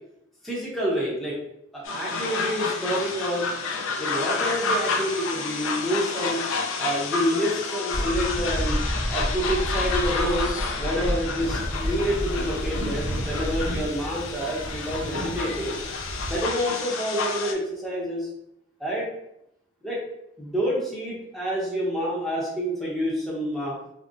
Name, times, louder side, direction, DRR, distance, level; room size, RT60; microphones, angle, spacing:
voice 1, 0.4-1.4 1.7-3.5 4.0-6.4 6.8-8.8 9.1-15.8 16.3-18.3 18.8-19.1 19.8-20.0 20.4-23.8, equal, ahead, -6 dB, 0.7 m, -28 dB
sound 1, 1.9-17.5, left 4 dB, 85° left, 0.4 m, -30 dB
sound 2, 7.9-13.9, equal, 45° left, 0.7 m, -29 dB
sound 3, 11.4-16.4, right 1 dB, 90° right, 0.6 m, -35 dB
3.7 x 2.0 x 2.4 m, 0.78 s
head